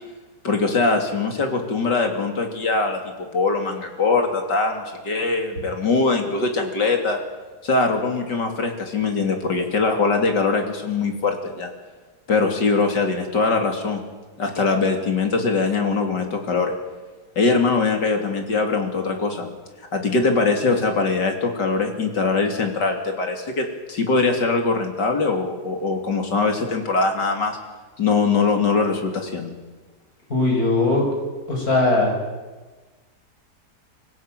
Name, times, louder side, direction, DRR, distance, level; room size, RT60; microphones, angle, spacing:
voice 1, 0.4-7.2 7.6-11.7 12.3-14.0 14.4-16.7 17.4-19.5 19.9-27.6 28.0-29.5, left 4 dB, 85° left, 4 dB, 3.7 m, -22 dB
voice 2, 30.3-31.1 31.5-32.2, left 2 dB, 60° left, 1 dB, 6.7 m, -19 dB
24.5 x 16.0 x 9.2 m, 1.3 s
omnidirectional pair, 1.8 m